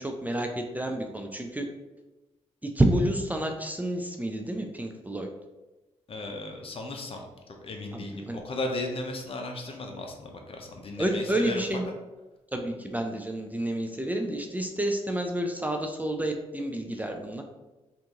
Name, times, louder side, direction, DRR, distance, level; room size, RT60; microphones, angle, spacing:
voice 1, 0.0-1.7 2.6-5.3 7.9-8.4 11.0-11.9 12.5-17.4, right 1 dB, 10° right, 3 dB, 0.4 m, -29 dB
voice 2, 6.1-7.2 7.6-11.6, left 2 dB, 45° left, 3 dB, 0.7 m, -35 dB
2.8 x 2.5 x 3.6 m, 1.1 s
supercardioid pair, 55°, 13 cm